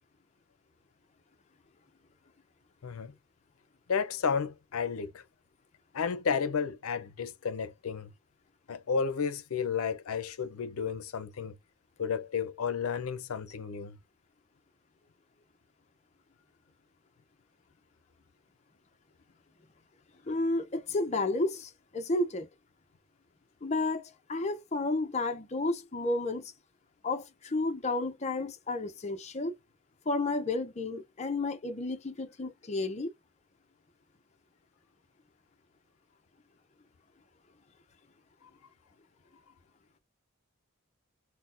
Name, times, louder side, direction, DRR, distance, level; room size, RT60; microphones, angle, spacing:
voice 1, 3.9-5.2 5.9-8.1 8.7-11.6 12.0-14.0, left 6 dB, 85° left, 0.5 m, -32 dB
voice 2, 20.3-22.5 23.6-26.5 27.0-29.5 30.1-33.1, left 2 dB, 30° left, 0.5 m, -32 dB
4.0 x 2.1 x 2.5 m
head